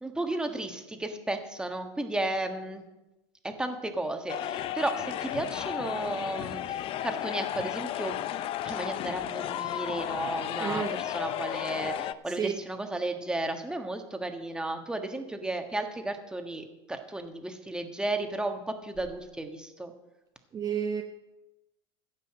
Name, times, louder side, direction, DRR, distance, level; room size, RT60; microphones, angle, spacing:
voice 1, 0.0-2.8 3.4-8.2 8.6-19.9, right 2 dB, 5° right, 5 dB, 1.4 m, -34 dB
sound 1, 4.3-12.1, left 12 dB, 40° left, 0.5 m, -33 dB
voice 2, 10.6-11.0 12.3-12.6 20.5-21.0, right 7 dB, 25° right, 4 dB, 0.8 m, -31 dB
15.0 x 5.5 x 7.6 m, 1.0 s
supercardioid pair, 115°, 14 cm